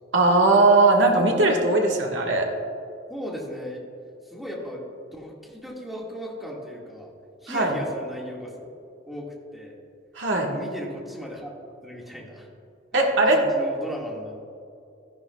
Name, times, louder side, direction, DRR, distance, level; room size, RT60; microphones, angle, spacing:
voice 1, 0.1-2.5 7.5-7.7 10.1-10.5 12.9-13.4, right 2 dB, 75° right, 0 dB, 1.6 m, -19 dB
voice 2, 3.1-3.8 4.2-4.8 5.1-7.1 7.4-8.7 9.1-9.3 9.5-9.8 10.5-11.5 11.8-12.5 13.2-14.4, equal, ahead, -4 dB, 1.8 m, -36 dB
13.5 x 10.5 x 2.3 m, 2.5 s
head